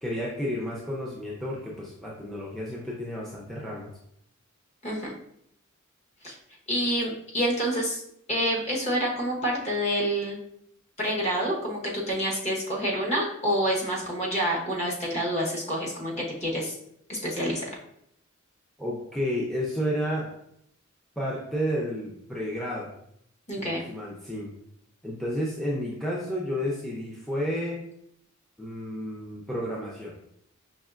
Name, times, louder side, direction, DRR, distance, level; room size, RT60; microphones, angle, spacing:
voice 1, 0.0-3.9 18.8-20.3 21.2-22.9 23.6-24.5 25.0-27.8 28.6-30.1, equal, ahead, -5 dB, 0.5 m, -31 dB
voice 2, 6.7-8.0 8.3-10.4 11.0-16.8 17.1-17.6 23.5-23.8, equal, 35° left, -3 dB, 1.1 m, -28 dB
5.3 x 3.1 x 2.4 m, 0.73 s
head